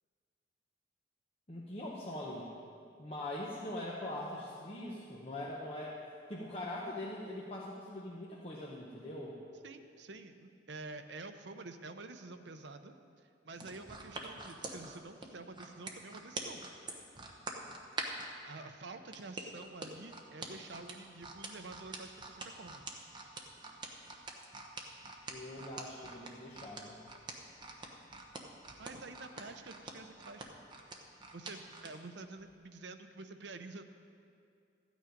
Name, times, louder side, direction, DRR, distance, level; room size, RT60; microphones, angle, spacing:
voice 1, 1.5-2.5 3.0-6.0 6.3-9.4 25.3-27.0, left 1 dB, 30° left, -4 dB, 1.0 m, -42 dB
voice 2, 9.6-12.9 13.4-16.6 18.4-22.9 28.8-30.5 31.3-33.8, right 3 dB, 60° right, 8 dB, 0.7 m, -48 dB
sound 1, 13.5-18.3 19.1-31.9 32.4-32.5, right 3 dB, 25° right, 0.9 m, -44 dB
13.0 x 9.4 x 5.2 m, 2.5 s
head